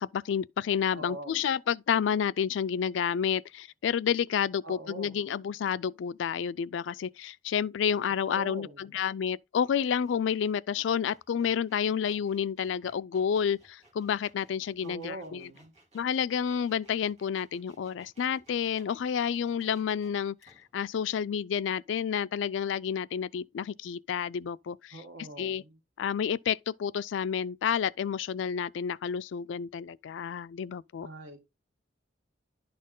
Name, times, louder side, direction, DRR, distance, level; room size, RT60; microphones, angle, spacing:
voice 1, 0.0-15.5 15.9-25.0 25.4-25.6 26.0-31.1, left 7 dB, 75° left, 0.3 m, -30 dB
voice 2, 0.9-1.4 4.6-5.2 8.2-8.9 14.8-15.7 24.9-25.8 31.0-31.4, right 2 dB, 90° right, 1.5 m, -43 dB
sound 1, 9.6-20.7, right 1 dB, 35° right, 2.7 m, -61 dB
11.0 x 4.3 x 3.7 m
head